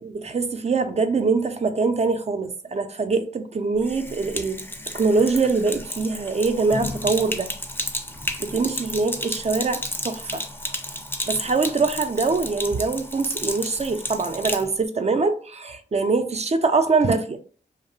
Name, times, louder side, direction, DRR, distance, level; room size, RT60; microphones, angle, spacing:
voice 1, 0.0-4.6 4.9-7.5 8.4-10.4 11.3-17.4, right 4 dB, 35° right, 0.5 m, -23 dB
Sink (filling or washing), 3.8-14.7, left 1 dB, 10° left, 0.5 m, -32 dB
2.7 x 2.0 x 2.7 m
cardioid pair, 45°, 18 cm